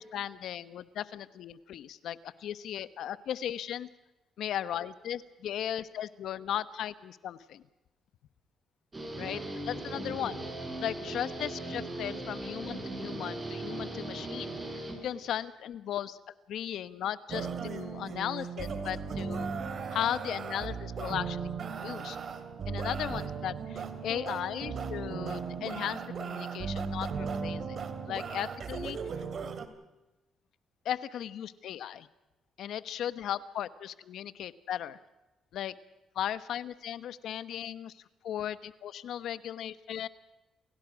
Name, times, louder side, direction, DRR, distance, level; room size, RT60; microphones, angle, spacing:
voice 1, 0.0-3.9 4.4-7.6 9.2-10.4 10.8-16.2 16.5-19.5 19.9-22.2 22.7-27.8 28.1-29.0 30.8-32.1 32.6-35.0 35.5-35.7 36.1-40.1, left 10 dB, 75° left, 15 dB, 1.1 m, -36 dB
Guitar, 8.9-15.5, right 2 dB, 25° right, 7.8 m, -38 dB
sound 1, 17.3-29.7, right 5 dB, 50° right, 2.5 m, -37 dB
28.5 x 17.0 x 6.3 m, 1.0 s
cardioid pair, 90°, 0 cm